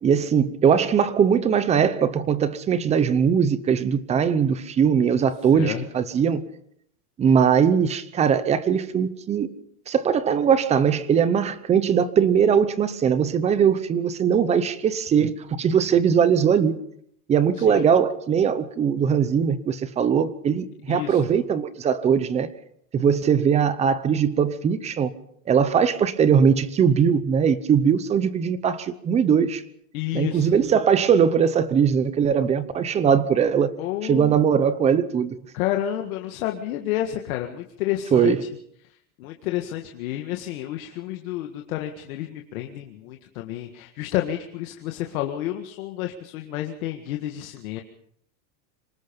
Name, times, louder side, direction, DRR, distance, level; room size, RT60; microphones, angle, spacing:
voice 1, 0.0-6.4 7.2-9.5 9.9-16.8 17.3-22.5 22.9-25.1 25.5-29.6 30.1-33.7 34.0-35.3 38.1-38.5, right 7 dB, 15° right, 0.8 m, -20 dB
voice 2, 5.5-5.8 17.7-17.8 20.9-21.2 29.9-30.5 33.8-34.4 35.5-38.4 39.2-47.8, left 13 dB, 70° left, 1.9 m, -30 dB
26.0 x 19.0 x 5.3 m
supercardioid pair, 165°, 44 cm